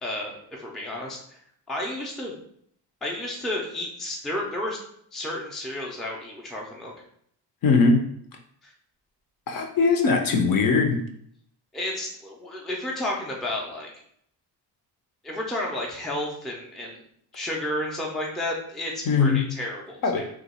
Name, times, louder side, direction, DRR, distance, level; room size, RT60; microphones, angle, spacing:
voice 1, 0.0-1.4 1.7-2.4 3.0-4.8 5.1-6.9 8.6-8.7 11.7-13.9 15.2-17.0 17.3-20.3, left 1 dB, ahead, -2 dB, 0.4 m, -32 dB
voice 2, 7.6-8.0 9.5-11.0 19.1-19.4 20.0-20.3, left 4 dB, 50° left, 4 dB, 0.5 m, -20 dB
2.8 x 2.3 x 4.1 m, 0.67 s
cardioid pair, 150°, 44 cm